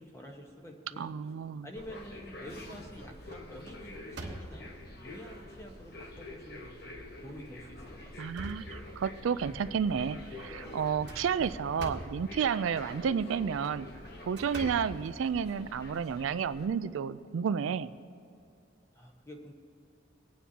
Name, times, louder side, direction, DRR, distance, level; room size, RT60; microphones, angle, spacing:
voice 1, 0.0-1.1 1.6-6.9 7.2-8.5 18.9-19.5, equal, 15° left, 1 dB, 1.2 m, -48 dB
voice 2, 1.0-1.7 8.2-13.9 14.3-17.9, right 7 dB, 85° right, 14 dB, 0.3 m, -31 dB
sound 1, 1.7-16.7, left 1 dB, 55° left, 1.2 m, -47 dB
sound 2, 1.8-2.3 2.7-3.0 3.3-4.9 5.6-5.7 6.2-6.3 7.2-7.4 7.9-9.3 10.8-12.3 13.4-15.7, right 2 dB, 60° right, 1.1 m, -45 dB
24.0 x 9.2 x 2.8 m, 2.6 s
head